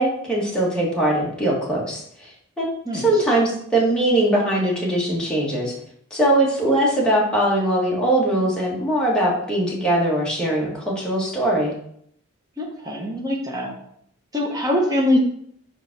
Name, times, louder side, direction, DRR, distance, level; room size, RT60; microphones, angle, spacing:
voice 1, 0.0-2.6 2.9-5.7 6.1-11.7, right 1 dB, 5° left, -5 dB, 1.6 m, -21 dB
voice 2, 12.6-13.7 14.3-15.2, left 1 dB, 15° right, -1 dB, 1.1 m, -23 dB
5.1 x 4.0 x 5.9 m, 0.68 s
head